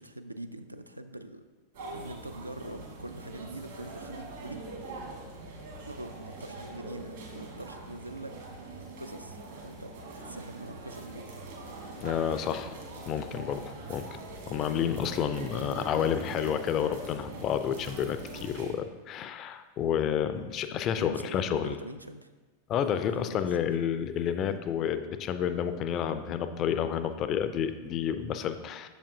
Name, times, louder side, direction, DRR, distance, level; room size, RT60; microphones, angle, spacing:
voice 1, 0.0-1.4 1.9-4.6 5.8-9.9 10.2-11.3 15.5-15.8 20.9-22.3 23.1-23.6, right 1 dB, 85° right, 9 dB, 0.3 m, -43 dB
sound 1, 1.7-18.7, right 2 dB, 60° right, 1.3 m, -43 dB
voice 2, 12.0-12.7 13.1-14.1 14.5-21.8 22.7-28.9, left 8 dB, 35° left, 10 dB, 0.3 m, -30 dB
6.8 x 5.0 x 2.7 m, 1.3 s
figure-of-eight pair, 90°, 0 cm